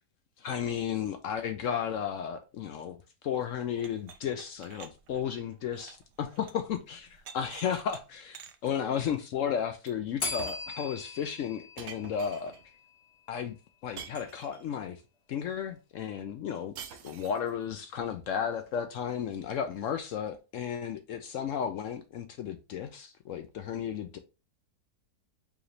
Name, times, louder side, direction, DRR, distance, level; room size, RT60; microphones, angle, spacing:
voice 1, 0.4-3.0 3.2-12.5 13.3-13.6 13.8-15.0 15.3-16.7 17.0-24.2, left 8 dB, 70° left, 0.8 m, -34 dB
sound 1, 3.8-6.7 6.9-8.0 8.3-8.7 9.9-10.0 10.2-10.8 11.8-12.6 14.0-14.8 16.7-17.5, right 7 dB, 75° right, 0.6 m, -46 dB
Bell, 10.2-13.0, left 4 dB, 50° left, 1.1 m, -40 dB
4.9 x 3.1 x 2.6 m
omnidirectional pair, 1.7 m